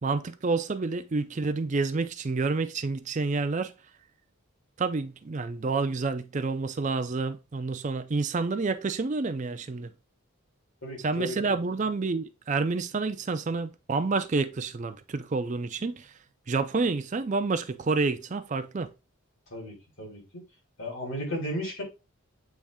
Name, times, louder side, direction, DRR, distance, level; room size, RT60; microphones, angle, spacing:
voice 1, 0.0-3.7 4.8-9.9 11.0-16.1 16.5-18.9, right 3 dB, 35° right, 0.4 m, -29 dB
voice 2, 10.8-11.6 19.5-20.4 20.8-21.8, equal, 70° left, 3.3 m, -35 dB
8.4 x 3.2 x 3.6 m
head